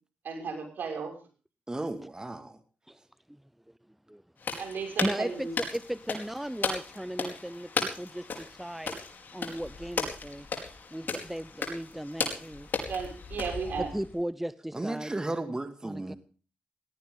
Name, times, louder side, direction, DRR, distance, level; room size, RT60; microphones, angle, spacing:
voice 1, 0.2-1.2 4.6-5.5 12.9-13.9, right 5 dB, 75° right, 6.2 m, -34 dB
voice 2, 1.7-2.6 14.7-16.2, right 2 dB, 20° right, 2.0 m, -34 dB
sound 1, 4.4-14.1, left 4 dB, 65° left, 4.7 m, -36 dB
voice 3, 5.0-9.0 9.3-10.5 10.9-12.7 13.9-15.1 15.4-15.5 15.8-16.1, right 1 dB, 5° right, 0.7 m, -36 dB
18.5 x 18.0 x 3.8 m
cardioid pair, 55°, 3 cm